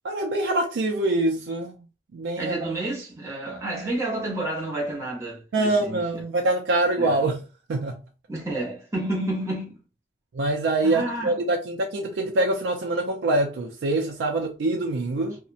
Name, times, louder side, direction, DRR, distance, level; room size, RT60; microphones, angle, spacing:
voice 1, 0.0-1.7 2.1-2.6 5.5-7.4 7.7-8.0 10.3-15.4, right 2 dB, 85° right, 0.4 m, -24 dB
voice 2, 2.4-6.2 7.0-7.2 8.3-9.8 10.8-11.4, right 1 dB, 15° right, 0.6 m, -30 dB
2.7 x 2.0 x 2.4 m
head